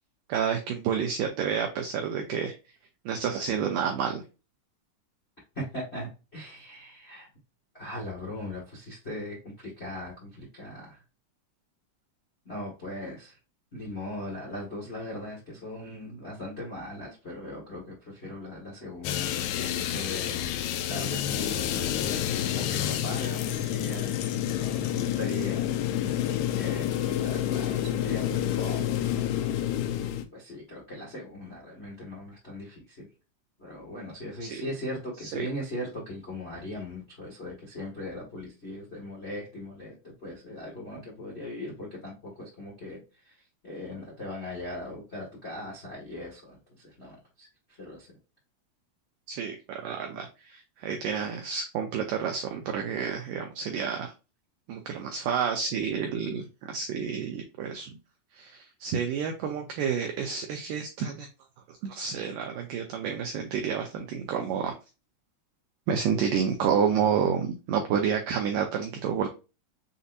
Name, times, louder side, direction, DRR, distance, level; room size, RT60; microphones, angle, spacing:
voice 1, 0.3-2.5 3.1-4.2 34.4-34.6 35.3-35.5 49.3-54.1 54.7-57.9 58.3-61.3 61.7-64.8 65.9-69.3, right 7 dB, 85° right, 3 dB, 1.9 m, -29 dB
voice 2, 5.5-7.3 7.7-11.0 12.4-13.4 13.7-24.1 24.4-29.9 30.3-33.1 33.6-43.3 43.6-47.5 47.8-48.1 50.1-50.2, left 1 dB, 55° left, -5 dB, 0.6 m, -39 dB
sound 1, 19.0-30.2, left 11 dB, 80° left, 2.5 m, -29 dB
6.9 x 2.7 x 2.5 m, 0.30 s
omnidirectional pair, 4.7 m